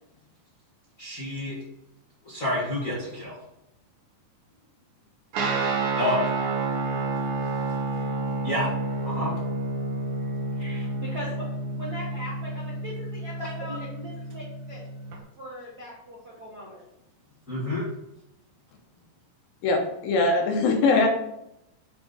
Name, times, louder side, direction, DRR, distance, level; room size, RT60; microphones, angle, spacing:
voice 1, 1.0-1.5 2.2-3.4 6.0-6.2 8.4-8.7 9.0-9.3 10.6-10.9 13.4-13.5 17.5-17.8, left 1 dB, 45° left, -8 dB, 1.0 m, -29 dB
Guitar, 5.3-15.2, right 3 dB, 65° right, 2.2 m, -30 dB
voice 2, 11.0-14.9 15.4-16.8, equal, 85° right, -7 dB, 0.8 m, -40 dB
voice 3, 19.6-21.1, left 3 dB, 80° left, 3 dB, 2.6 m, -22 dB
6.9 x 3.8 x 3.9 m, 0.83 s
omnidirectional pair, 4.2 m